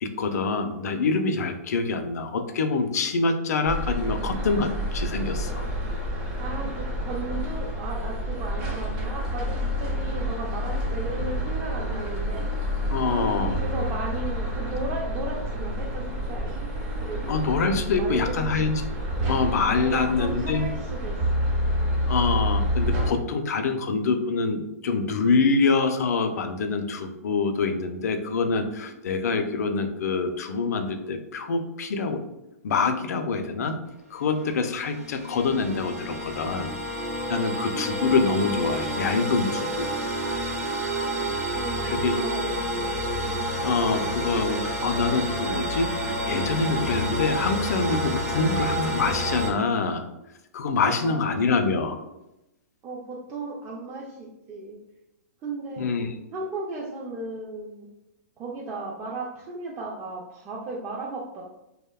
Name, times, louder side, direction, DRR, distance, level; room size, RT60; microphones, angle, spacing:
voice 1, 0.0-5.6 11.1-11.2 12.9-13.6 17.3-18.8 19.3-20.7 22.1-32.3 32.6-33.8 34.1-36.7 37.3-39.9 41.8-42.1 43.6-50.0 50.5-52.0 55.8-56.1, left 4 dB, 75° left, 7 dB, 0.4 m, -25 dB
sound 1, 3.7-23.1, equal, 40° right, 0.9 m, -28 dB
voice 2, 6.4-12.4 13.0-16.6 17.0-17.4 17.9-18.6 19.7-21.4 21.8-22.0 37.4-37.9 41.5-42.9 43.2-43.4 50.8-51.2 52.8-54.8 55.4-55.9 56.3-57.9 58.4-61.4, right 2 dB, 25° right, -3 dB, 0.4 m, -35 dB
sound 2, 34.3-49.5, right 1 dB, 75° right, 0.6 m, -29 dB
2.7 x 2.0 x 2.2 m, 0.90 s
hypercardioid pair, 125°, 9 cm